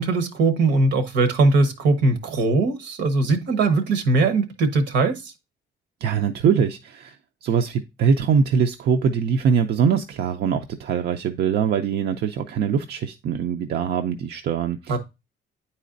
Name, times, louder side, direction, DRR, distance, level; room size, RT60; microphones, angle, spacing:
voice 1, 0.0-5.2 14.9-15.0, right 3 dB, 80° right, 1.1 m, -20 dB
voice 2, 6.0-15.0, right 7 dB, 65° right, 0.5 m, -22 dB
9.2 x 4.2 x 2.5 m
cardioid pair, 110°, 18 cm